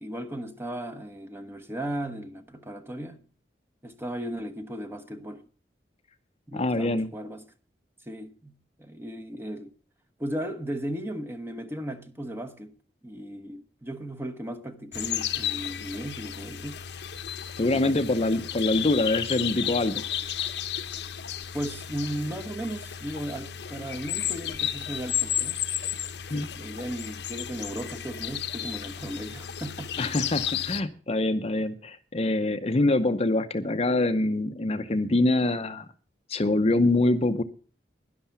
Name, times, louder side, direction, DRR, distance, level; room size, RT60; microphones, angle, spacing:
voice 1, 0.0-3.2 3.8-5.4 6.5-7.4 8.1-8.5 8.8-9.7 10.2-12.7 13.0-16.8 17.7-18.3 21.5-25.6 26.3-30.0, right 1 dB, 15° right, 1.0 m, -36 dB
voice 2, 6.5-7.1 17.6-20.0 26.3-26.5 30.0-35.9 36.3-37.4, left 2 dB, 35° left, 0.7 m, -25 dB
sound 1, 14.9-30.8, left 10 dB, 70° left, 0.9 m, -33 dB
11.5 x 11.0 x 5.8 m
head